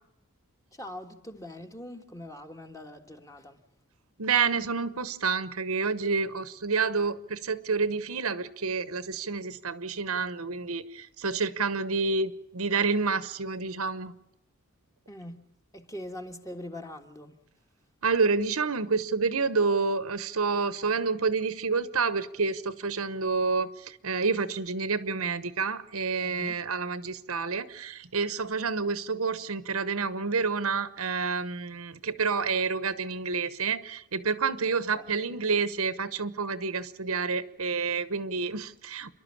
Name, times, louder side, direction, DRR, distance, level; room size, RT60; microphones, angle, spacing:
voice 1, 0.7-3.6 15.1-17.4 26.2-26.6 34.7-35.2, left 1 dB, 15° left, 1.5 m, -43 dB
voice 2, 4.2-14.1 18.0-39.1, right 4 dB, 70° right, 1.1 m, -29 dB
29.0 x 11.5 x 8.6 m
head